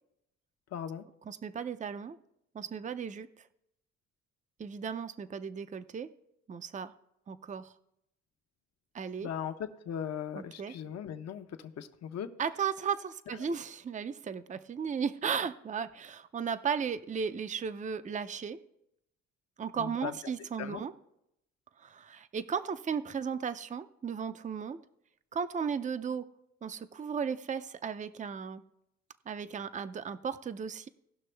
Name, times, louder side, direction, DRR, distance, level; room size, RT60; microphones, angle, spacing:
voice 1, 0.7-1.0 9.2-12.3 19.8-20.1 20.6-20.8, left 9 dB, 60° left, 8 dB, 0.9 m, -38 dB
voice 2, 1.3-2.2 2.5-3.5 4.6-6.1 6.5-6.9 7.3-7.7 8.9-9.3 10.4-10.7 12.4-18.6 19.6-20.9 21.8-24.8 25.3-26.3 26.6-28.6 29.3-30.9, right 6 dB, 25° right, 12 dB, 0.5 m, -35 dB
17.5 x 6.0 x 3.3 m, 0.80 s
cardioid pair, 90°, 30 cm